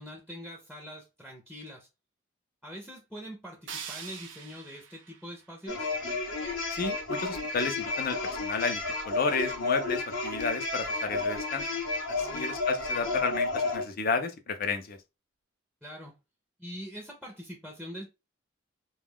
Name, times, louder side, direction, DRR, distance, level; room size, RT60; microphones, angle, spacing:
voice 1, 0.0-1.9 2.6-5.9 12.2-12.5 15.8-16.1 16.6-18.1, equal, 5° left, 0.6 m, -43 dB
sound 1, 3.7-6.6, right 7 dB, 70° right, 0.6 m, -45 dB
sound 2, 5.7-13.8, left 3 dB, 90° left, 0.9 m, -31 dB
voice 2, 6.7-11.7 12.2-15.0, left 4 dB, 50° left, 0.5 m, -32 dB
2.3 x 2.3 x 3.5 m
head